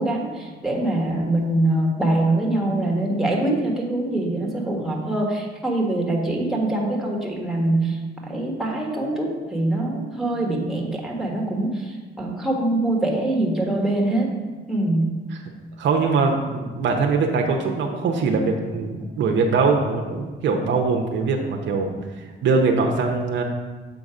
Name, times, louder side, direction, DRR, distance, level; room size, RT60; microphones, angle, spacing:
voice 1, 0.0-14.3 14.7-15.1, right 1 dB, ahead, -2 dB, 1.5 m, -23 dB
voice 2, 15.8-23.4, right 4 dB, 70° right, 2 dB, 0.8 m, -22 dB
7.2 x 4.0 x 4.9 m, 1.3 s
cardioid pair, 90°, 20 cm